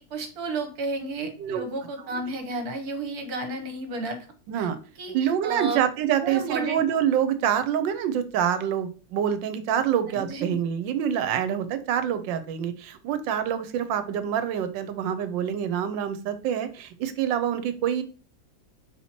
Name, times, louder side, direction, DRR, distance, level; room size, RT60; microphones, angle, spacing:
voice 1, 0.1-4.2 4.5-4.7 5.0-5.8 6.1-6.8 10.1-10.6, right 3 dB, 55° right, 5 dB, 1.3 m, -32 dB
voice 2, 5.1-18.0, right 9 dB, 75° right, 10 dB, 1.3 m, -26 dB
4.4 x 2.8 x 4.3 m, 0.37 s
omnidirectional pair, 2.1 m